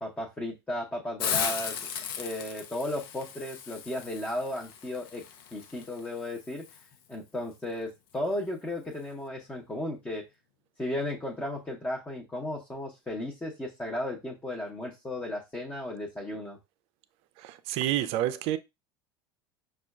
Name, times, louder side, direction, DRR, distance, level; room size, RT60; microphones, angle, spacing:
voice 1, 0.0-1.8 2.2-5.2 5.5-6.8 7.1-10.2 10.8-16.6, left 1 dB, 10° left, 0.8 m, -35 dB
Hiss, 1.2-6.8, left 8 dB, 65° left, 0.6 m, -36 dB
voice 2, 17.4-18.6, right 13 dB, 50° right, 0.4 m, -29 dB
6.0 x 2.3 x 2.3 m
figure-of-eight pair, 75°, 13 cm